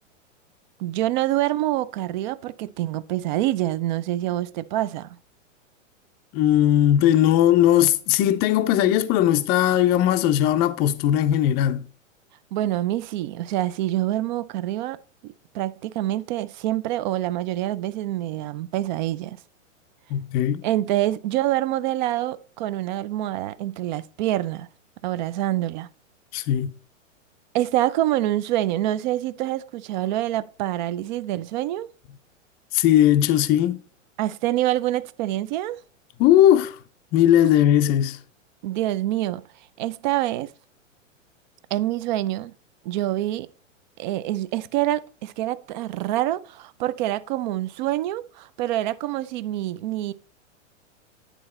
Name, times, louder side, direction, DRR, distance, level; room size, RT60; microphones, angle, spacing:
voice 1, 0.8-5.2 12.5-15.0 15.2-19.4 20.6-24.7 25.0-25.9 27.5-31.9 34.2-35.8 38.6-39.4 39.8-40.5 41.7-42.5 42.8-43.5 44.0-50.1, right 14 dB, 40° right, 0.4 m, -26 dB
voice 2, 6.3-11.8 20.1-20.6 26.3-26.7 32.7-33.8 36.2-36.8 37.1-38.2, left 11 dB, 25° left, 0.5 m, -18 dB
10.0 x 4.0 x 4.2 m
hypercardioid pair, 125°, 38 cm